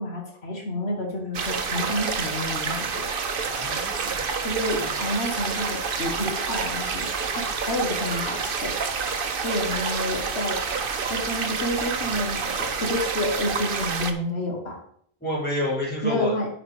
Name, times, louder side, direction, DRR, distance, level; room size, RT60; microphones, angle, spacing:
voice 1, 0.0-3.1 4.4-7.1 7.3-8.7 9.2-10.6 11.1-14.8 16.0-16.5, left 1 dB, 75° left, 1 dB, 1.7 m, -29 dB
sound 1, 1.3-14.1, right 5 dB, 60° right, 1.0 m, -28 dB
voice 2, 3.5-4.4 4.8-4.9 15.2-16.3, left 1 dB, 10° left, -6 dB, 3.9 m, -29 dB
9.9 x 4.9 x 5.0 m, 0.64 s
omnidirectional pair, 1.1 m